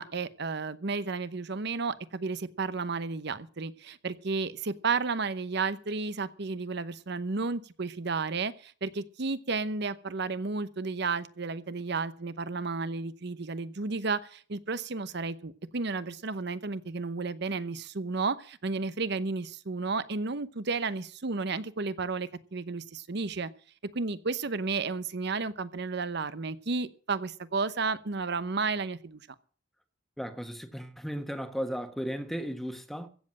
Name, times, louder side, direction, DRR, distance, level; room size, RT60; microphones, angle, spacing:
voice 1, 0.0-23.5 23.9-29.2, right 4 dB, 65° right, 0.9 m, -32 dB
voice 2, 30.2-33.1, equal, ahead, 1.4 m, -35 dB
15.5 x 7.6 x 7.6 m
head